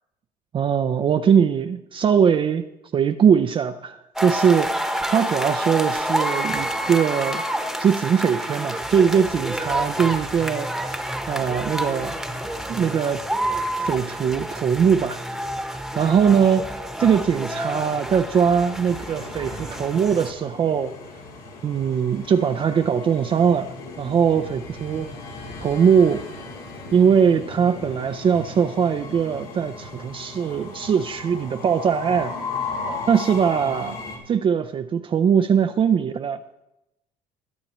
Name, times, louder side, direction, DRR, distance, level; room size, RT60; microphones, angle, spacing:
voice 1, 0.5-2.6 2.9-7.4 7.8-10.7 11.3-12.2 12.7-13.2 13.8-15.2 15.9-20.9 21.6-25.1 25.6-26.2 26.9-32.3 33.1-34.0 34.3-36.4, right 7 dB, 35° right, 8 dB, 0.5 m, -21 dB
sound 1, 4.2-20.3, right 1 dB, ahead, 1.0 m, -28 dB
Train, 17.4-34.2, left 3 dB, 85° left, 3.1 m, -37 dB
20.5 x 8.8 x 3.1 m, 0.90 s
cardioid pair, 120°, 16 cm